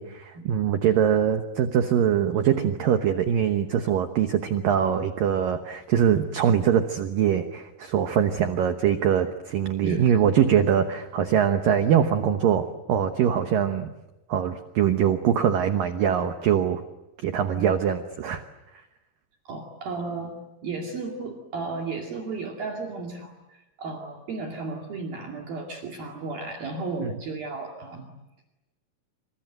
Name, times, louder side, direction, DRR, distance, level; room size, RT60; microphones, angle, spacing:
voice 1, 0.0-13.9 14.3-16.8 17.2-18.4 27.0-27.1, right 9 dB, 80° right, 7 dB, 2.0 m, -23 dB
voice 2, 9.8-10.2 17.6-17.8 19.5-28.1, right 3 dB, 55° right, 1 dB, 3.8 m, -34 dB
28.0 x 26.5 x 7.9 m, 1.0 s
omnidirectional pair, 5.7 m